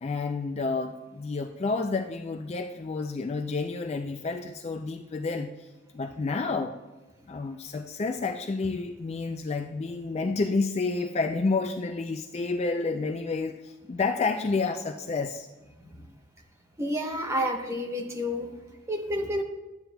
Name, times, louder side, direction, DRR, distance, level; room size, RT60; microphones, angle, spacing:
voice 1, 0.0-5.7 5.9-6.8 7.3-15.5, left 3 dB, 30° left, 6 dB, 0.3 m, -30 dB
voice 2, 16.8-18.6 18.9-19.4, equal, 15° right, 1 dB, 0.9 m, -30 dB
12.0 x 8.9 x 2.3 m, 1.1 s
head